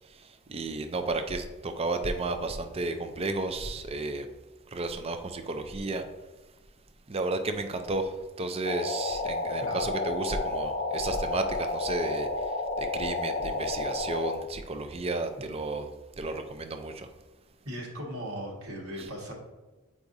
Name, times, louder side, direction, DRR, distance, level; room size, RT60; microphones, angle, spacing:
voice 1, 0.5-4.3 4.7-6.0 7.1-8.1 8.4-12.3 12.8-15.9 16.2-17.1, right 2 dB, 30° right, 7 dB, 0.5 m, -32 dB
sound 1, 8.6-14.3, left 3 dB, 40° left, 0.6 m, -31 dB
voice 2, 9.6-9.9 17.7-19.3, equal, 80° right, -2 dB, 1.7 m, -38 dB
8.4 x 4.7 x 2.7 m, 1.2 s
head